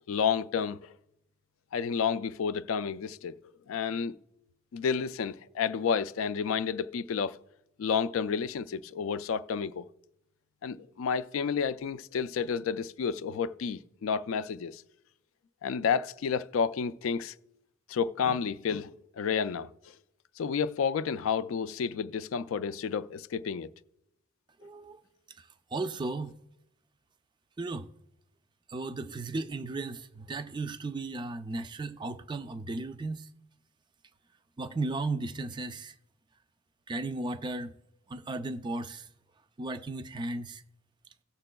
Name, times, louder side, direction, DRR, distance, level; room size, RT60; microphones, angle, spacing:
voice 1, 0.1-0.9 1.7-3.4 3.7-4.2 4.7-7.4 7.8-9.9 10.6-14.8 15.6-17.3 17.9-18.9 19.2-19.7 20.4-23.7, left 6 dB, 80° left, 0.3 m, -30 dB
voice 2, 24.6-25.0 25.4-26.4 27.6-27.9 28.7-33.3 34.6-35.9 36.9-37.7 38.1-39.1 39.6-40.6, right 2 dB, 20° right, 0.4 m, -35 dB
17.5 x 6.7 x 2.2 m
head